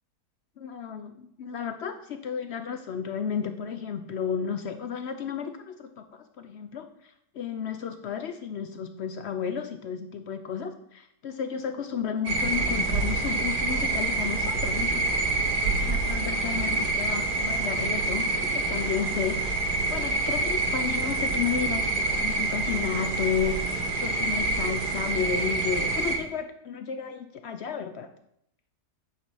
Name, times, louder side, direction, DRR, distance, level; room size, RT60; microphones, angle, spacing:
voice 1, 0.6-28.1, left 7 dB, 70° left, 8 dB, 0.6 m, -33 dB
sound 1, 12.3-26.2, right 3 dB, 80° right, 1.7 m, -27 dB
9.3 x 4.2 x 6.2 m, 0.75 s
omnidirectional pair, 1.7 m